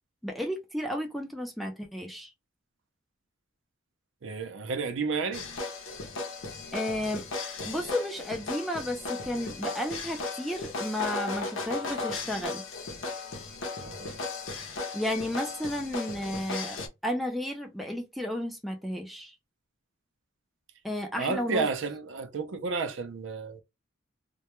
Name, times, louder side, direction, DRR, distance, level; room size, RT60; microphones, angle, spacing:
voice 1, 0.2-2.3 6.7-7.2 7.6-12.6 14.9-19.4 20.8-21.7, left 1 dB, ahead, 0.3 m, -33 dB
voice 2, 4.2-5.5 13.8-14.3 21.2-23.6, right 4 dB, 65° right, 0.5 m, -32 dB
sound 1, 5.3-16.9, left 3 dB, 80° left, 0.7 m, -36 dB
2.2 x 2.1 x 2.9 m
head